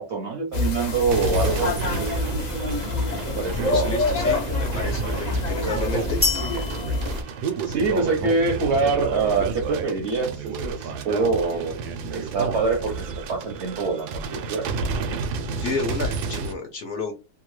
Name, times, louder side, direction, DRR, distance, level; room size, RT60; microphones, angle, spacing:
voice 1, 0.0-2.1 3.2-3.7 7.6-14.7, right 4 dB, 65° right, 0.7 m, -25 dB
sound 1, 0.5-7.2, left 2 dB, 90° left, 0.3 m, -26 dB
sound 2, 1.1-16.5, right 5 dB, 85° right, 1.1 m, -31 dB
voice 2, 3.6-6.3 15.6-17.1, left 4 dB, 65° left, 0.8 m, -31 dB
sound 3, 6.2-8.2, left 4 dB, 20° left, 0.4 m, -29 dB
2.8 x 2.3 x 3.0 m
omnidirectional pair, 1.7 m